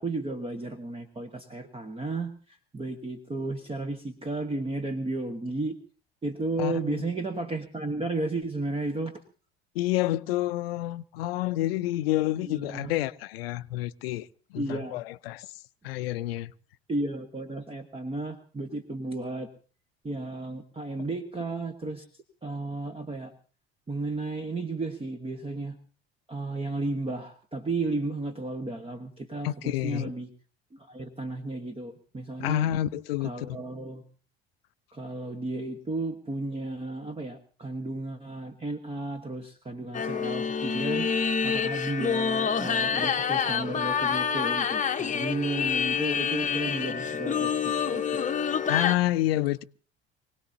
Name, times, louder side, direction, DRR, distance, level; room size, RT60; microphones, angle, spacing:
voice 1, 0.0-2.3 2.7-5.8 6.2-9.1 12.4-12.9 14.6-15.0 16.9-19.5 20.0-22.0 22.4-23.3 23.9-25.8 26.3-30.3 30.7-32.7 33.2-34.0 34.9-47.6 47.9-48.0, right 2 dB, 20° right, 1.4 m, -33 dB
voice 2, 6.6-7.1 9.7-14.3 14.5-15.5 15.8-16.5 29.4-30.1 32.4-33.6 48.7-49.6, left 15 dB, 70° left, 0.7 m, -28 dB
sound 1, 39.9-48.9, left 6 dB, 25° left, 1.1 m, -27 dB
25.0 x 18.0 x 2.8 m
figure-of-eight pair, 65°, 31 cm